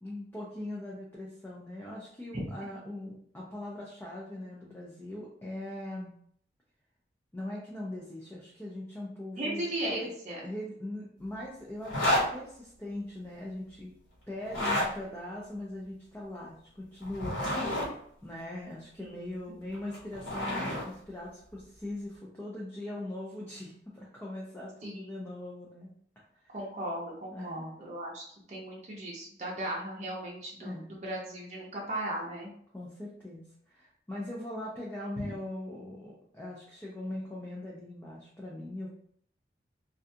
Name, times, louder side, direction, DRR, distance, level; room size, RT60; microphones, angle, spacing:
voice 1, 0.0-6.1 7.3-9.6 9.9-10.1 10.4-14.0 14.3-17.4 18.2-25.9 26.3-26.6 27.3-27.8 30.6-30.9 32.7-38.9, left 1 dB, 10° left, -5 dB, 0.4 m, -40 dB
voice 2, 9.4-10.4 19.0-19.2 24.8-25.3 26.5-28.2 28.5-32.5 35.2-35.3, right 1 dB, 40° right, -3 dB, 0.6 m, -37 dB
sound 1, 11.8-12.3 14.4-14.9 17.0-17.9 19.7-20.8, left 1 dB, 80° left, 1.1 m, -29 dB
2.4 x 2.2 x 2.7 m, 0.64 s
head